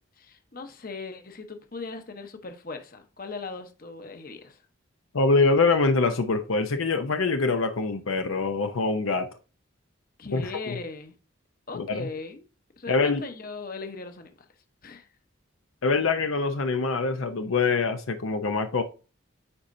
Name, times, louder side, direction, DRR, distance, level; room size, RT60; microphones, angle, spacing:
voice 1, 0.2-4.6 10.2-11.1 11.7-12.4 12.8-14.3 14.8-15.1, left 3 dB, 45° left, 0.9 m, -38 dB
voice 2, 5.1-9.3 10.3-10.8 11.7-12.1 12.9-13.2 15.8-18.8, left 3 dB, 75° left, 0.7 m, -24 dB
9.9 x 4.3 x 2.6 m
head